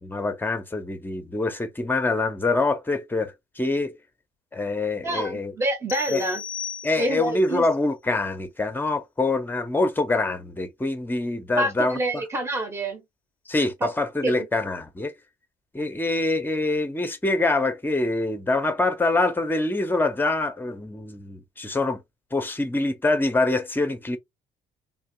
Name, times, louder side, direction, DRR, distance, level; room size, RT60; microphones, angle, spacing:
voice 1, 0.0-3.9 4.5-5.5 6.1-6.2 6.8-12.2 13.5-15.1 15.7-22.0 22.3-24.2, left 2 dB, 10° left, 0.8 m, -25 dB
voice 2, 5.0-6.4 7.0-7.7 11.6-13.0 13.8-13.9 14.2-14.5, right 1 dB, 15° right, 1.0 m, -27 dB
sound 1, 5.9-7.4, left 8 dB, 60° left, 0.5 m, -36 dB
3.8 x 2.7 x 2.7 m
cardioid pair, 110°, 17 cm